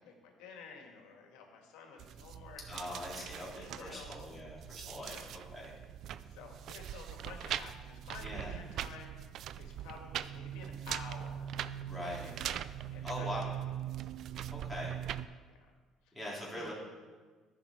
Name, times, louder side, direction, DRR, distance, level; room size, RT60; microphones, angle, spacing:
voice 1, 0.0-4.4 4.9-5.3 6.3-9.1 9.6-11.5 12.0-12.6 12.9-14.0 15.4-15.6 16.0-16.2 16.5-16.7, left 5 dB, 85° left, 2 dB, 1.8 m, -52 dB
sound 1, 2.0-15.3, right 10 dB, 60° right, 0.3 m, -41 dB
voice 2, 2.7-5.7 8.2-8.5 11.8-12.3 13.0-13.5 14.5-14.9 16.1-16.7, left 1 dB, ahead, -6 dB, 3.3 m, -42 dB
14.0 x 5.9 x 4.4 m, 1.4 s
cardioid pair, 110°, 0 cm